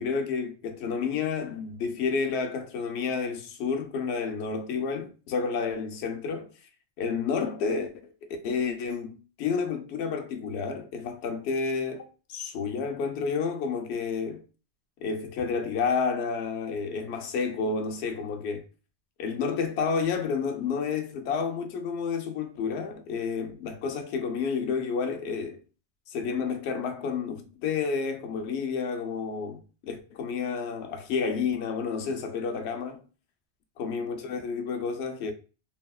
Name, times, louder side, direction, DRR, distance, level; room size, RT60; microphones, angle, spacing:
voice 1, 0.0-6.5 7.0-8.1 8.4-14.4 15.0-18.6 19.2-25.6 26.1-33.0 33.8-35.3, left 5 dB, 70° left, 0.8 m, -30 dB
3.4 x 2.2 x 2.2 m
omnidirectional pair, 1.2 m